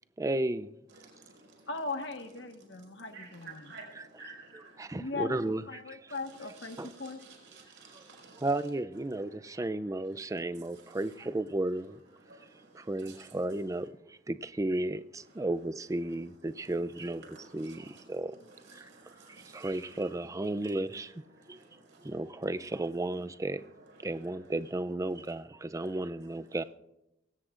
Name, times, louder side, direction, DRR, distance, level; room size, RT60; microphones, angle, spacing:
voice 1, 0.2-0.7 3.9-6.1 6.8-6.9 7.9-8.1 8.3-12.0 12.7-18.3 18.7-18.9 19.2-21.1 21.5-21.6 22.0-23.6 24.0-26.6, right 2 dB, 15° right, 0.4 m, -34 dB
voice 2, 1.1-1.5 3.1-4.9 6.7-8.4 12.3-12.9 17.3-17.4 18.8-19.7 21.5-22.1, right 4 dB, 70° right, 5.4 m, -52 dB
voice 3, 1.7-3.7 4.9-5.4 5.7-7.2, left 3 dB, 70° left, 1.4 m, -39 dB
23.0 x 18.0 x 2.5 m
head